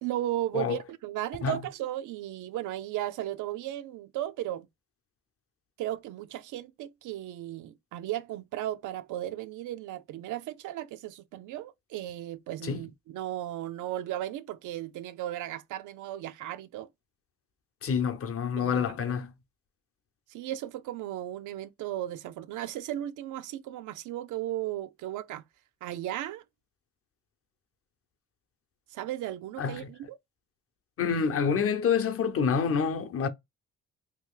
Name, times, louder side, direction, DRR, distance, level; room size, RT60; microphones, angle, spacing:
voice 1, 0.0-4.7 5.8-16.9 18.6-19.2 20.3-25.4 25.8-26.4 28.9-30.2, right 13 dB, 80° right, 0.5 m, -35 dB
voice 2, 17.8-19.3 29.6-29.9 31.0-33.3, left 6 dB, 50° left, 0.8 m, -27 dB
2.9 x 2.4 x 3.6 m
cardioid pair, 90°, 30 cm